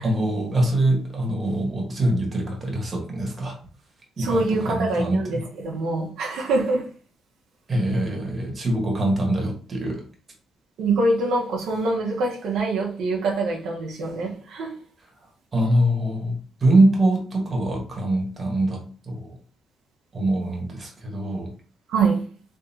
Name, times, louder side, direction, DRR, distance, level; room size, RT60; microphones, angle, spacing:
voice 1, 0.0-3.6 4.2-5.4 7.7-10.0 15.5-19.3 20.1-21.5, right 1 dB, 35° right, 1.5 m, -23 dB
voice 2, 4.2-5.4 5.6-6.9 10.8-14.8 21.9-22.3, right 3 dB, 80° right, 1.0 m, -24 dB
3.5 x 3.4 x 2.9 m
cardioid pair, 90°, 0 cm